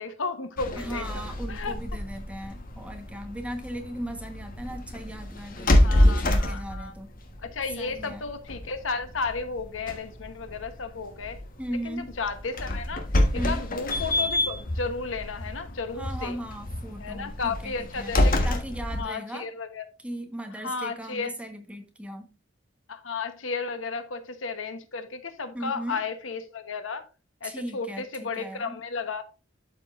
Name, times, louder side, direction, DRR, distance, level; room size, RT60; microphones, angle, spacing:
voice 1, 0.0-1.1 1.5-1.7 5.7-6.9 7.4-11.4 11.8-13.1 13.4-16.4 17.0-18.4 18.9-19.8 20.6-21.3 22.9-27.1 27.4-29.2, left 4 dB, 80° left, 1.1 m, -33 dB
sound 1, 0.6-19.0, left 1 dB, 45° left, 1.4 m, -28 dB
voice 2, 0.8-7.1 7.8-8.3 11.6-12.1 13.3-13.7 15.9-18.1 18.4-19.5 20.0-22.3 25.5-26.0 27.4-28.8, right 1 dB, 5° right, 1.2 m, -37 dB
12.0 x 5.3 x 2.5 m
head